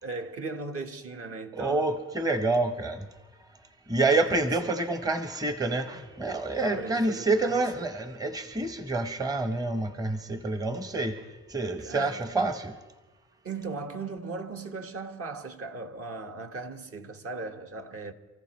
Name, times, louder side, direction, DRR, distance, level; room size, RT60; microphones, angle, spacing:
voice 1, 0.0-1.9 4.3-4.5 6.6-7.9 11.8-12.3 13.4-18.1, right 3 dB, 50° right, 1.4 m, -37 dB
voice 2, 1.6-3.0 3.9-11.2 11.5-12.7, right 2 dB, 10° right, 0.9 m, -28 dB
28.5 x 14.5 x 3.1 m
cardioid pair, 90°, 30 cm